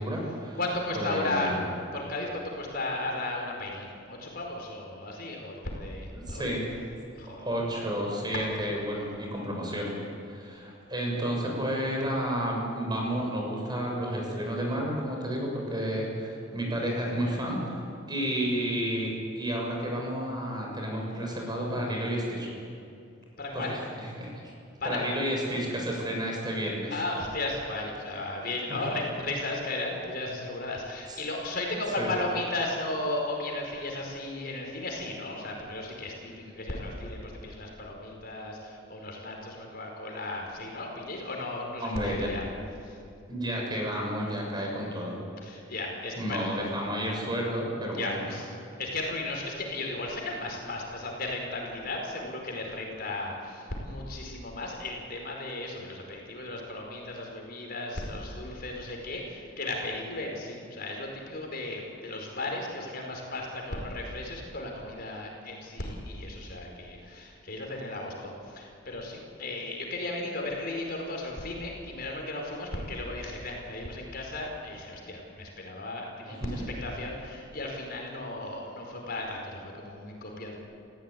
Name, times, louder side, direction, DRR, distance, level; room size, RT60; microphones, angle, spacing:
voice 1, 0.0-0.6 0.9-1.6 6.1-6.6 7.4-9.9 10.3-17.7 18.1-22.5 23.5-24.3 24.8-26.9 28.4-29.0 31.1-31.2 32.0-32.1 41.8-42.3 43.3-45.1 46.2-48.2 76.3-76.7, equal, 20° right, -1 dB, 6.6 m, -31 dB
voice 2, 0.5-1.5 1.9-6.5 7.2-7.5 23.4-23.8 24.8-25.0 26.9-42.4 42.8-43.0 45.4-46.7 47.9-48.5 48.8-80.6, left 2 dB, 50° left, 1 dB, 5.0 m, -35 dB
30.0 x 16.5 x 9.4 m, 2.5 s
head